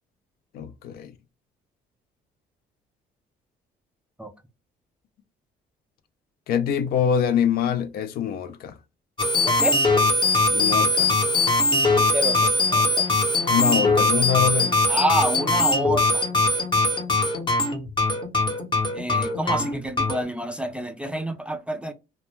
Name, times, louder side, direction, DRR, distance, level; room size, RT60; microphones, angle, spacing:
voice 1, 0.5-1.1 6.5-8.7 10.5-11.1 13.5-14.8, left 8 dB, 65° left, 0.4 m, -24 dB
sound 1, 9.2-20.2, left 2 dB, 30° left, 0.7 m, -21 dB
voice 2, 9.4-9.8 12.1-13.1 14.9-16.2 18.9-21.9, right 1 dB, 5° right, 0.3 m, -28 dB
2.1 x 2.1 x 3.1 m
cardioid pair, 110°, 17 cm